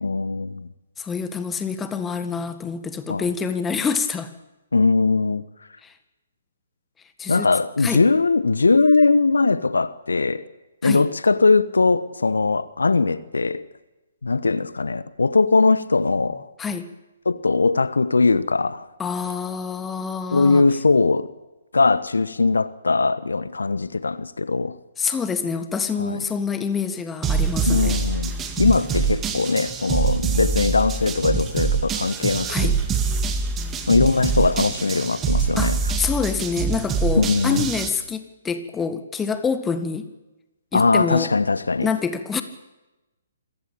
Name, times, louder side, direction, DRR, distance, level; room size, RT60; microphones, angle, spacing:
voice 1, 0.0-0.7 3.1-3.3 4.7-5.4 7.3-10.4 10.8-13.6 14.2-16.5 17.2-18.9 20.3-21.3 21.7-24.8 26.0-26.2 27.7-32.7 33.9-35.8 37.1-37.7 40.7-41.9, left 3 dB, 75° left, 1.1 m, -20 dB
voice 2, 1.0-4.3 5.8-5.9 7.2-7.5 7.8-8.0 10.8-11.1 16.6-16.9 19.0-20.6 25.0-28.0 32.5-32.8 35.6-40.1 40.7-41.3 41.8-42.4, left 5 dB, 10° left, 1.7 m, -26 dB
sound 1, 27.2-37.9, right 5 dB, 15° right, 2.1 m, -24 dB
26.5 x 15.5 x 8.8 m
figure-of-eight pair, 130°, 0 cm